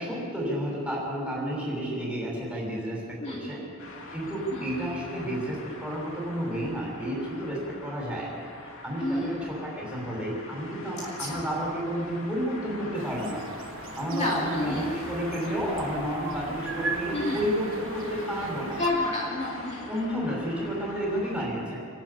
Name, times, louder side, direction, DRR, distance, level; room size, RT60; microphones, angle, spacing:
voice 1, 0.0-3.6 4.1-8.3 8.8-13.5 14.0-18.8 19.9-21.9, equal, 5° right, -4 dB, 6.3 m, -31 dB
voice 2, 3.2-3.6 4.5-4.8 9.0-9.4 11.2-11.4 14.1-14.8 17.1-17.4 18.8-19.9, left 2 dB, 30° left, -4 dB, 2.5 m, -30 dB
sound 1, 3.8-21.5, left 2 dB, 65° left, 2.7 m, -43 dB
sound 2, 12.9-18.9, right 3 dB, 65° right, 1.5 m, -39 dB
27.0 x 12.5 x 8.9 m, 2.7 s
head